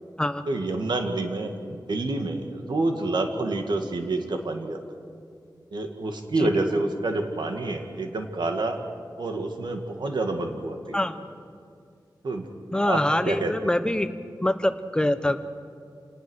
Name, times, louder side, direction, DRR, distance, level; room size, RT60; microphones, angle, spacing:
voice 1, 0.5-4.8 5.7-8.8 9.2-11.0 12.2-12.5 12.8-13.6, right 2 dB, 80° right, 4 dB, 2.2 m, -28 dB
voice 2, 12.7-14.1 14.4-15.4, left 1 dB, 10° left, 10 dB, 1.0 m, -24 dB
27.5 x 19.0 x 6.4 m, 2.2 s
wide cardioid pair, 115°, 8 cm